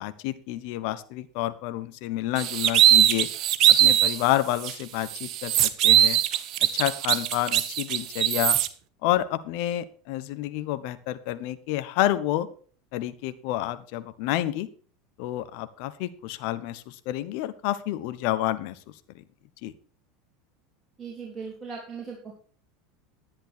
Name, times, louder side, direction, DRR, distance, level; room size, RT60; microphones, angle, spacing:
voice 1, 0.0-3.3 3.7-6.2 6.7-8.6 9.0-12.5 12.9-14.7 15.2-18.8 19.6-19.7, left 14 dB, 60° left, 13 dB, 1.0 m, -29 dB
sound 1, 2.4-4.2 4.6-4.7 5.1-8.7, right 12 dB, 50° right, 0.9 m, -20 dB
voice 2, 21.0-22.3, right 5 dB, 25° right, -3 dB, 3.4 m, -38 dB
11.0 x 10.0 x 4.5 m, 0.42 s
hypercardioid pair, 85°, 0 cm